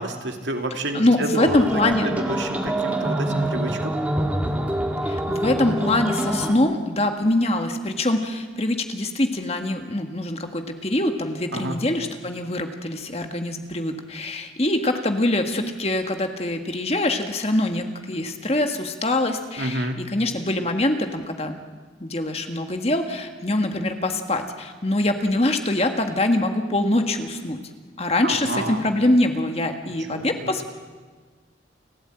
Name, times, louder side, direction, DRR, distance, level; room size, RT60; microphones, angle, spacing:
voice 1, 0.0-3.9 11.5-11.8 19.6-20.0 28.2-28.8 30.1-30.5, right 1 dB, 75° right, 4 dB, 2.4 m, -29 dB
voice 2, 0.9-2.1 5.0-21.6 22.0-27.6 28.0-30.7, left 1 dB, 35° left, 5 dB, 1.7 m, -24 dB
sound 1, 1.5-6.5, right 1 dB, 10° right, 1.7 m, -25 dB
29.5 x 12.5 x 9.0 m, 1.5 s
head